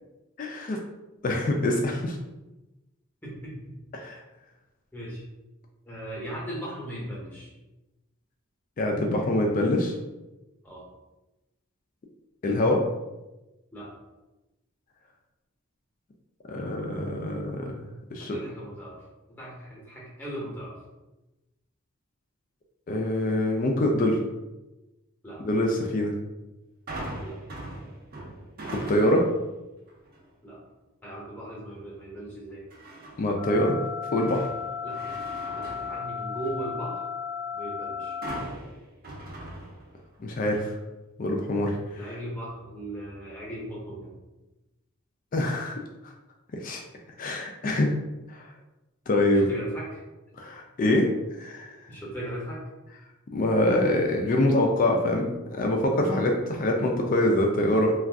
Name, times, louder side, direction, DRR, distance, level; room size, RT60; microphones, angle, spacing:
voice 1, 0.4-0.8 1.2-2.2 3.9-4.2 8.8-10.0 12.4-12.8 16.5-18.4 22.9-24.2 25.4-26.1 28.7-29.3 33.2-33.8 34.1-34.5 40.2-40.7 41.2-41.8 45.3-45.7 46.0-46.1 46.5-46.8 47.2-48.0 48.3-48.5 49.1-49.5 50.4-51.1 51.4-51.8 53.3-57.9, left 1 dB, 40° left, 2 dB, 0.3 m, -25 dB
voice 2, 3.2-3.8 4.9-5.2 5.8-7.5 10.6-10.9 13.7-13.9 18.2-19.0 19.3-20.8 25.2-25.4 27.2-27.4 30.4-30.6 31.0-32.7 34.8-35.2 35.5-37.1 37.5-38.2 41.9-44.1 49.3-50.0 51.9-52.6 56.1-56.2, right 1 dB, 10° left, -5 dB, 0.7 m, -38 dB
sound 1, 26.9-29.4 29.9-30.3 32.7-33.4 33.8-36.7 38.2-40.2 40.5-40.6, right 1 dB, 45° right, 0.6 m, -40 dB
sound 2, 33.4-38.4, left 7 dB, 70° right, 1.2 m, -34 dB
2.5 x 2.3 x 3.4 m, 1.0 s
head